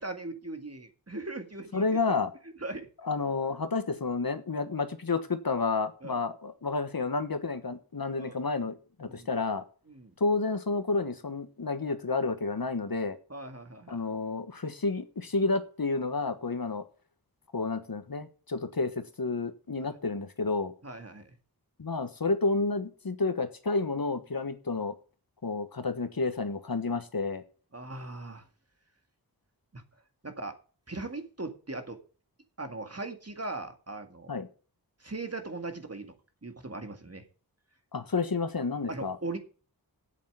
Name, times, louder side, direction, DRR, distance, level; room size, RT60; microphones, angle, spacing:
voice 1, 0.0-2.0 2.6-2.9 6.0-6.2 8.2-8.4 9.1-9.3 9.9-10.1 13.3-14.0 19.8-19.9 20.8-21.3 27.7-28.5 29.7-29.8 30.2-30.6 30.9-32.0 32.6-34.4 35.0-36.1 36.4-37.3 38.9-39.4, right 2 dB, 40° right, 7 dB, 2.0 m, -39 dB
voice 2, 1.7-2.3 3.0-9.6 10.2-13.2 13.9-16.8 17.5-20.7 21.8-24.9 25.4-27.4 34.3-34.5 37.9-39.2, left 3 dB, 65° left, 10 dB, 1.4 m, -30 dB
8.4 x 7.6 x 8.1 m, 0.37 s
wide cardioid pair, 60°, 38 cm